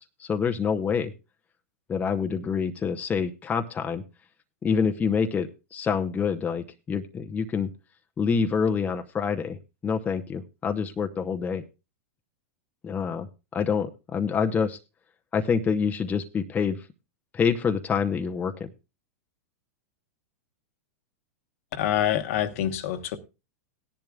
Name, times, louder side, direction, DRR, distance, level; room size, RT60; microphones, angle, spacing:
voice 1, 0.2-1.1 1.9-4.0 4.6-7.7 8.2-9.6 9.8-11.6 12.8-13.3 13.5-14.8 15.3-16.8 17.3-18.7, left 6 dB, 20° left, 0.7 m, -26 dB
voice 2, 21.8-23.2, left 11 dB, 60° left, 1.2 m, -26 dB
17.5 x 10.5 x 2.3 m
hypercardioid pair, 120°, 8 cm